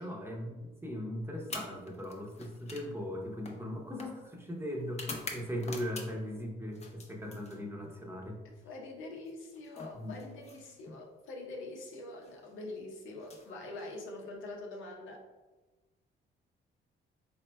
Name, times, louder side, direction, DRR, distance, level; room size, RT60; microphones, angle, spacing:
voice 1, 0.0-8.4 9.9-10.1, equal, 10° right, -1 dB, 0.8 m, -39 dB
sound 1, 1.4-6.4 6.7-8.0 9.2-11.0 12.1-12.3 13.1-14.3, left 3 dB, 35° left, 0.6 m, -47 dB
voice 2, 8.4-15.2, left 2 dB, 80° left, 0 dB, 0.8 m, -44 dB
4.3 x 3.5 x 2.2 m, 1.2 s
cardioid pair, 90°, 20 cm